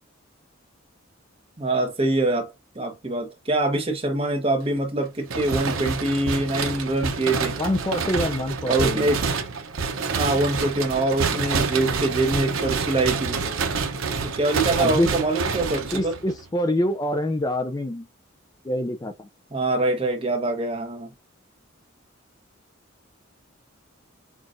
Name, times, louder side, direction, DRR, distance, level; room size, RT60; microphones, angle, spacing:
voice 1, 1.6-7.6 8.7-9.2 10.1-13.4 14.2-16.2 19.5-21.1, right 2 dB, 25° right, 1.0 m, -24 dB
sound 1, 5.3-16.5, right 5 dB, 80° right, 0.8 m, -27 dB
voice 2, 7.6-9.1 14.7-15.1 15.9-18.1 18.6-19.3, left 1 dB, 15° left, 0.4 m, -25 dB
5.8 x 2.4 x 2.5 m
head